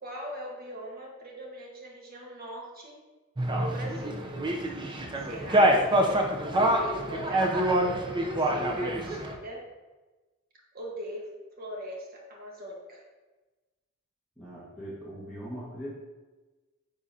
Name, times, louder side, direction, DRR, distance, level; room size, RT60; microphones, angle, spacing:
voice 1, 0.0-3.0 3.5-4.3 5.2-5.9 6.7-7.9 8.4-9.7 10.7-11.3 11.6-13.0, equal, 45° right, -1 dB, 1.4 m, -41 dB
sound 1, 3.4-9.3, right 1 dB, 25° right, 0.6 m, -26 dB
voice 2, 14.4-15.9, equal, ahead, -12 dB, 1.5 m, -40 dB
10.0 x 3.9 x 2.7 m, 1.2 s
head